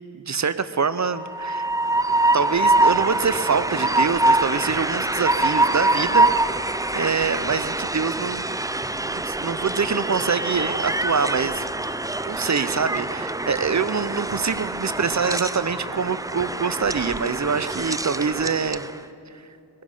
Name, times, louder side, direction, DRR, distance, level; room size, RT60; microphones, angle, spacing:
voice 1, 0.1-1.7 2.3-6.3 6.9-8.5 9.1-11.6 12.3-18.9 19.3-19.4, right 5 dB, 35° right, 14 dB, 0.7 m, -25 dB
Train, 1.1-18.9, right 2 dB, 10° right, 0.4 m, -24 dB
20.5 x 10.0 x 5.5 m, 2.8 s
cardioid pair, 40°, 47 cm